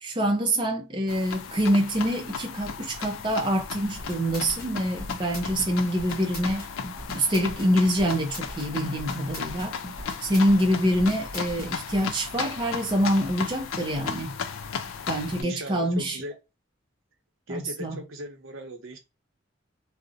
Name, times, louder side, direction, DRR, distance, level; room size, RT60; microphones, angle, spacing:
voice 1, 0.0-6.6 7.1-9.8 10.2-14.3 15.1-16.2 17.5-18.0, equal, 25° right, 0.4 m, -25 dB
sound 1, 1.1-15.4, left 6 dB, 85° left, 0.4 m, -36 dB
sound 2, 3.8-11.7, left 1 dB, 50° left, 0.9 m, -39 dB
voice 2, 15.4-16.3 17.5-19.0, equal, 80° right, 0.7 m, -38 dB
2.5 x 2.0 x 2.5 m
head